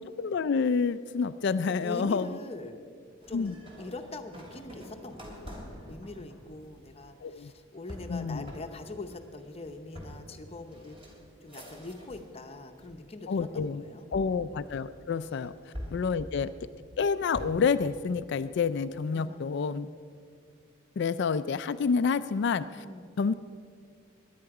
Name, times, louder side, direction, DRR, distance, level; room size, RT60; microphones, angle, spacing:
voice 1, 0.0-2.4 3.3-3.5 7.2-7.5 8.1-8.5 13.3-13.8 14.1-16.5 17.0-19.9 21.0-22.7 23.2-23.3, left 5 dB, 55° left, 12 dB, 0.4 m, -28 dB
voice 2, 1.7-2.9 3.3-5.6 5.9-11.0 11.4-14.1 15.3-15.4 15.7-16.0 19.1-19.6 22.7-23.2, left 2 dB, 30° left, 6 dB, 0.8 m, -43 dB
sound 1, 3.2-12.4 12.7-13.4 14.1-15.2 15.7-17.8, equal, 25° right, 2.8 m, -46 dB
21.5 x 10.5 x 4.8 m, 2.2 s
head